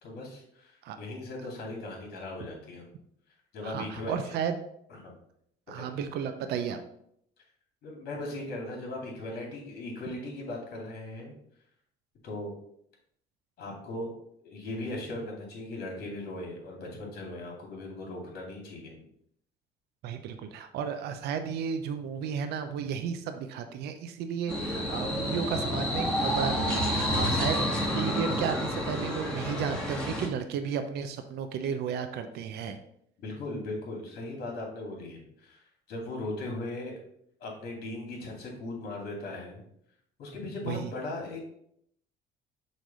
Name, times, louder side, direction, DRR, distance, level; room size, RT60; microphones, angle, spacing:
voice 1, 0.0-0.7 1.0-2.9 3.5-4.4 4.9-5.1 5.7-5.9 7.8-11.4 12.2-12.5 13.6-14.1 14.4-18.9 33.2-37.0 37.4-39.6 40.2-41.6, left 2 dB, 65° left, 0 dB, 2.6 m, -38 dB
voice 2, 3.6-4.6 5.7-6.8 20.0-32.8 40.6-40.9, right 7 dB, 75° right, 8 dB, 0.6 m, -33 dB
sound 1, 24.5-30.3, equal, 5° left, 1.8 m, -29 dB
6.3 x 3.3 x 5.3 m, 0.72 s
cardioid pair, 110°, 17 cm